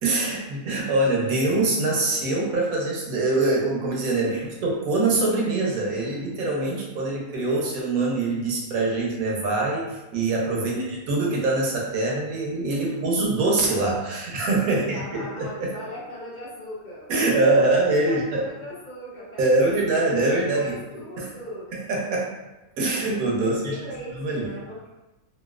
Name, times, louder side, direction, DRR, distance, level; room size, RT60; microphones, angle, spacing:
voice 1, 0.0-10.7 11.1-15.7 17.1-18.5 19.4-20.8 21.2-21.3 21.7-22.3 22.8-23.7 24.2-24.4, right 2 dB, 75° right, -3 dB, 1.2 m, -24 dB
voice 2, 10.6-11.2 12.7-13.1 14.7-21.7 23.3-24.9, equal, 55° left, -6 dB, 0.5 m, -38 dB
3.0 x 2.7 x 2.3 m, 1.0 s
omnidirectional pair, 1.5 m